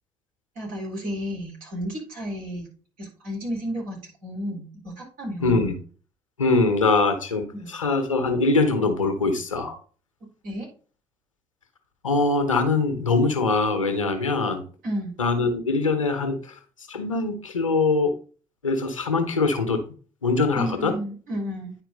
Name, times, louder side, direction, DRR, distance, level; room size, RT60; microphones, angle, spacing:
voice 1, 0.6-2.7 3.0-5.6 7.5-7.7 10.4-10.7 14.8-15.2 20.5-21.8, equal, 60° right, -3 dB, 4.1 m, -32 dB
voice 2, 5.4-5.7 6.4-9.7 12.0-14.6 15.2-16.5 16.9-18.2 18.6-19.8 20.2-21.0, left 3 dB, 90° left, 8 dB, 0.9 m, -23 dB
9.8 x 4.5 x 3.8 m, 0.38 s
figure-of-eight pair, 45°, 16 cm